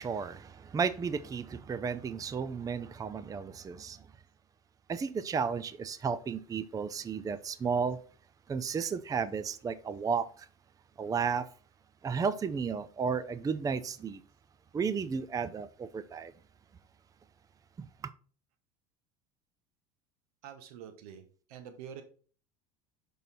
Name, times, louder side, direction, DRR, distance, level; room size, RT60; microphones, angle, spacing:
voice 1, 0.0-4.0 4.9-8.0 8.5-10.5 11.0-11.5 12.0-14.2 14.7-16.3 17.8-17.9, right 6 dB, 20° right, 0.5 m, -33 dB
voice 2, 20.4-21.2 21.5-22.0, right 8 dB, 85° right, 1.1 m, -46 dB
6.0 x 5.4 x 4.1 m
supercardioid pair, 110°, 19 cm